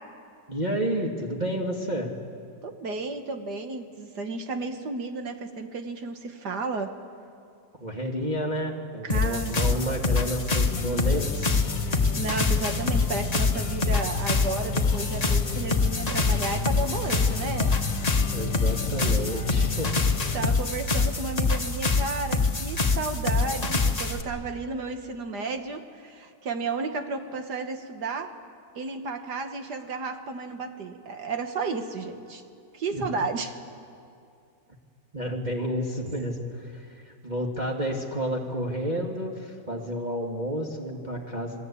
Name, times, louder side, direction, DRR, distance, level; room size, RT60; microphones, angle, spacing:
voice 1, 0.5-2.1 7.8-11.7 18.3-20.0 32.9-33.0 35.1-41.6, equal, 25° right, -1 dB, 1.9 m, -30 dB
voice 2, 2.6-6.9 9.0-9.5 11.9-17.7 20.3-28.3 28.8-32.4 32.7-33.5, right 3 dB, 60° right, 6 dB, 1.8 m, -33 dB
sound 1, 9.1-24.2, left 3 dB, 25° left, 1.3 m, -25 dB
sound 2, 10.7-20.5, left 8 dB, 75° left, 1.6 m, -33 dB
27.5 x 21.0 x 8.5 m, 2.4 s
omnidirectional pair, 2.1 m